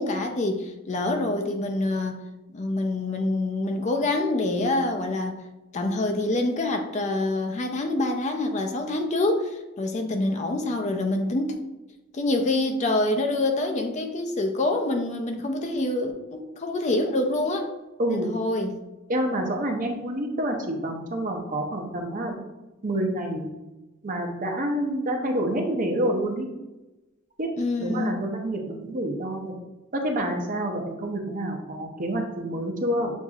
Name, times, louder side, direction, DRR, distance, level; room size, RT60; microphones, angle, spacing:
voice 1, 0.0-2.2 2.5-5.4 5.7-11.5 12.1-17.7 18.1-18.8 27.6-28.2, left 2 dB, 35° left, 5 dB, 0.4 m, -26 dB
voice 2, 18.0-18.3 19.1-22.4 22.8-23.5 24.0-26.5 27.4-27.5 27.8-29.5 29.9-33.1, right 1 dB, 40° right, 2 dB, 0.7 m, -28 dB
7.2 x 2.6 x 2.4 m, 1.1 s
head